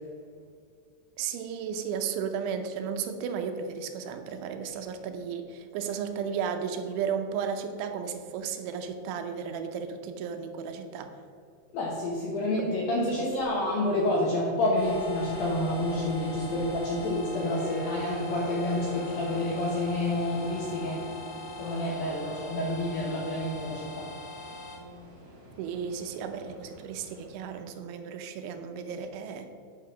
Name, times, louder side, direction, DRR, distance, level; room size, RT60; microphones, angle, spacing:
voice 1, 1.2-11.1 25.6-29.5, right 7 dB, 85° right, 6 dB, 3.0 m, -34 dB
voice 2, 11.7-21.1 21.6-24.1, left 1 dB, 75° left, -3 dB, 2.2 m, -29 dB
sound 1, 14.7-24.8, left 1 dB, 50° left, 2.4 m, -41 dB
sound 2, 15.2-27.3, equal, 40° right, 2.8 m, -49 dB
Wind instrument woodwind instrument, 15.9-20.2, left 1 dB, 55° right, 4.0 m, -44 dB
8.9 x 4.7 x 6.0 m, 2.3 s
omnidirectional pair, 5.4 m